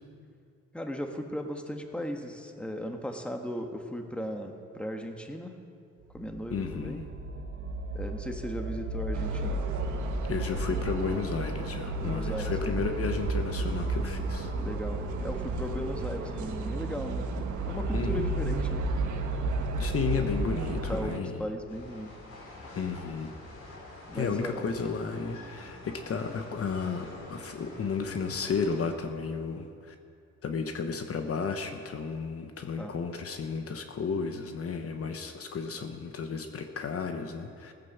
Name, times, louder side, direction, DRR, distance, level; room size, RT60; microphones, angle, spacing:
voice 1, 0.7-5.5 6.1-7.1 7.9-9.6 12.0-12.9 14.6-18.8 20.9-22.1 24.1-24.6 32.8-32.9, equal, 5° left, 4 dB, 1.4 m, -37 dB
sound 1, 6.1-20.9, right 2 dB, 45° right, 1.4 m, -33 dB
voice 2, 6.5-7.0 10.3-14.5 17.9-18.4 19.8-21.5 22.7-23.3 24.1-29.9 30.4-37.7, left 5 dB, 50° left, 6 dB, 1.1 m, -33 dB
sound 2, 9.1-21.2, right 6 dB, 75° right, 1.4 m, -38 dB
sound 3, 21.7-28.9, left 2 dB, 75° left, 4.0 m, -47 dB
16.5 x 9.2 x 7.2 m, 2.4 s
cardioid pair, 90°, 30 cm